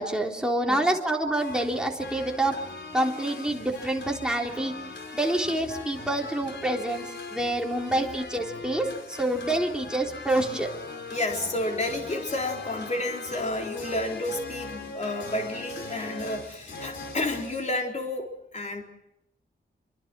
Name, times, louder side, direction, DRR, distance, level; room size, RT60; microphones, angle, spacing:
voice 1, 0.0-2.6 2.9-4.7 5.1-10.7, right 1 dB, 5° right, 0 dB, 3.7 m, -27 dB
sound 1, 1.4-17.8, left 3 dB, 80° left, 4.2 m, -40 dB
voice 2, 11.1-18.8, left 1 dB, 40° left, 1 dB, 3.9 m, -31 dB
27.0 x 24.5 x 6.2 m, 0.80 s
wide cardioid pair, 145°, 18 cm